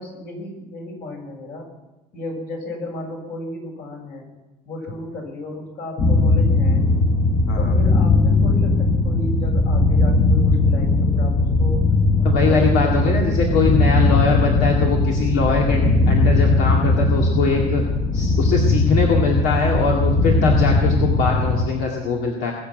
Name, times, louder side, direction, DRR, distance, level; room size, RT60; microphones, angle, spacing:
voice 1, 0.0-1.7 2.1-4.3 4.7-7.0 7.5-11.9 12.2-13.4 14.0-14.3, left 2 dB, 70° left, 0 dB, 7.0 m, -34 dB
sound 1, 6.0-21.7, left 2 dB, 40° left, 1.3 m, -18 dB
voice 2, 12.2-17.8 18.1-22.5, left 4 dB, 90° left, -1 dB, 2.3 m, -22 dB
21.5 x 7.4 x 9.0 m, 1.0 s
cardioid pair, 110°, 17 cm